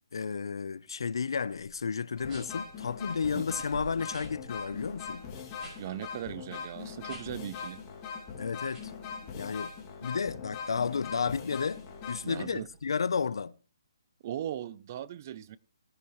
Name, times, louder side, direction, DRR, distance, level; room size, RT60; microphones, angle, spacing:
voice 1, 0.1-5.2 8.4-8.9 9.3-9.7 10.0-13.6, left 5 dB, 75° left, 0.6 m, -32 dB
sound 1, 1.5-1.7 2.2-2.7 3.2-3.3 3.5-5.8 6.1-6.3 7.0-7.5 7.9-8.2 8.7-8.8, right 2 dB, 15° right, 5.8 m, -47 dB
sound 2, 2.2-12.8, left 6 dB, 25° left, 2.3 m, -42 dB
voice 2, 5.8-7.8 12.2-12.7 14.2-15.6, right 11 dB, 35° right, 0.5 m, -38 dB
18.5 x 10.0 x 3.1 m
hypercardioid pair, 160°, 2 cm